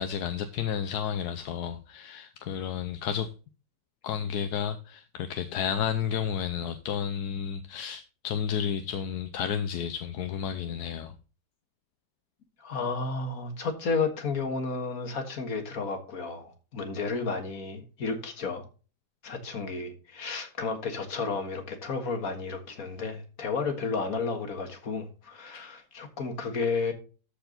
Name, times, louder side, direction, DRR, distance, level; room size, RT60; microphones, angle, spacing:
voice 1, 0.0-3.3 4.0-11.1 25.5-25.7, left 8 dB, 70° left, 1.1 m, -32 dB
voice 2, 12.6-18.6 19.2-26.9, left 4 dB, 50° left, 2.0 m, -32 dB
13.5 x 4.6 x 3.8 m
omnidirectional pair, 1.9 m